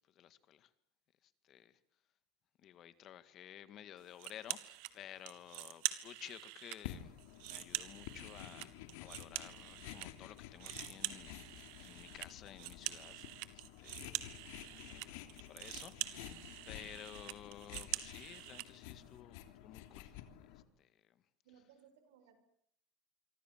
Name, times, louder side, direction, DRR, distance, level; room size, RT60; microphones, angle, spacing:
voice 1, 0.1-0.7 1.2-1.8 2.6-8.7 9.0-11.5 11.8-14.1 14.6-20.1 20.8-21.0, left 11 dB, 40° left, 13 dB, 1.9 m, -54 dB
sound 1, 4.2-4.9 5.3-6.8 7.2-10.1 10.4-18.7, right 18 dB, 70° right, 2.1 m, -44 dB
sound 2, 6.8-20.6, left 12 dB, 75° left, 3.3 m, -52 dB
voice 2, 21.4-22.3, right 8 dB, 90° right, 8 dB, 7.3 m, -63 dB
27.0 x 24.5 x 7.4 m, 0.71 s
supercardioid pair, 140°, 0 cm